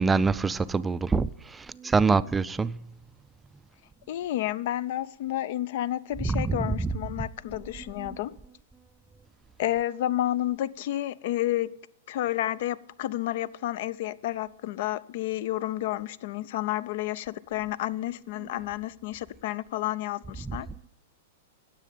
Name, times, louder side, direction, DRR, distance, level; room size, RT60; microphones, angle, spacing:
voice 1, 0.0-2.9 6.2-6.9, right 4 dB, 15° right, 0.3 m, -25 dB
voice 2, 4.1-8.3 9.6-11.7 12.1-20.7, left 14 dB, 60° left, 0.5 m, -30 dB
9.9 x 7.5 x 9.3 m
hypercardioid pair, 120°, 0 cm